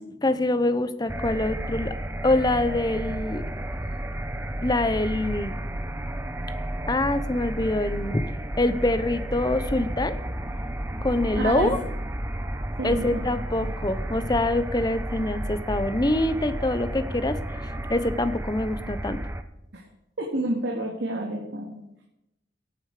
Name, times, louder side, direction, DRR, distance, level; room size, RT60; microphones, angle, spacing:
voice 1, 0.0-1.9 2.2-3.4 4.6-5.5 6.9-8.2 8.6-10.2 11.0-11.8 12.8-17.4 17.9-19.2, left 2 dB, 20° left, 12 dB, 0.8 m, -25 dB
sound 1, 1.1-19.4, right 1 dB, 15° right, 0.8 m, -32 dB
voice 2, 11.4-11.7 12.8-13.2 13.6-13.7 19.7-19.8 20.2-21.8, right 1 dB, 75° right, -1 dB, 2.4 m, -29 dB
17.0 x 9.6 x 5.0 m, 0.87 s
head